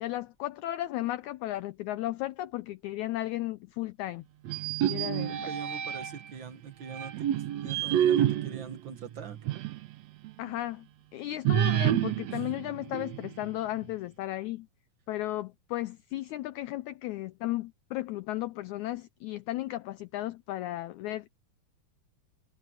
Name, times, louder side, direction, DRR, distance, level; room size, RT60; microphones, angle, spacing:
voice 1, 0.0-4.3 4.9-5.5 10.4-10.9 11.1-14.7 15.1-21.4, left 15 dB, 90° left, 1.6 m, -35 dB
sound 1, 4.4-6.3 6.9-9.9 10.2-10.3 11.4-13.5, right 11 dB, 65° right, 1.9 m, -29 dB
voice 2, 5.5-9.4 12.3-12.4, right 7 dB, 80° right, 1.0 m, -43 dB
omnidirectional pair, 4.0 m